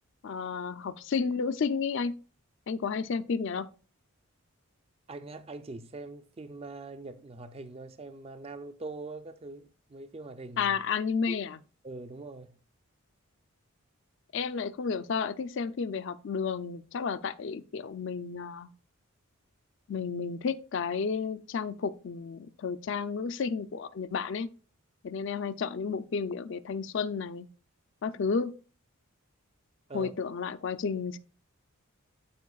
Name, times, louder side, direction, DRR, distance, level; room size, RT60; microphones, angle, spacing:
voice 1, 0.2-2.2 2.7-3.7 10.6-11.6 14.3-18.7 19.9-24.5 25.0-27.5 28.0-28.5 29.9-31.2, left 5 dB, 55° left, 0.4 m, -32 dB
voice 2, 5.1-10.8 11.3-11.4 11.8-12.6 29.9-30.1, right 3 dB, 25° right, 0.4 m, -43 dB
13.0 x 4.5 x 2.3 m
head